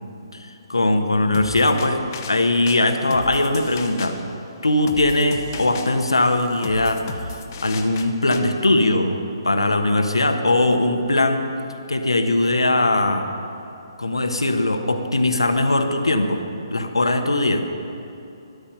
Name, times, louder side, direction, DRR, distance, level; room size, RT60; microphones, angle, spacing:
voice 1, 0.3-2.0 2.3-4.2 4.6-7.4 7.6-11.5 11.9-13.3 14.0-16.4 16.7-17.6, left 2 dB, 80° left, 6 dB, 1.2 m, -20 dB
sound 1, 1.3-8.4, left 5 dB, 40° left, 1.0 m, -36 dB
12.5 x 11.0 x 5.7 m, 2.8 s
figure-of-eight pair, 135°, 3 cm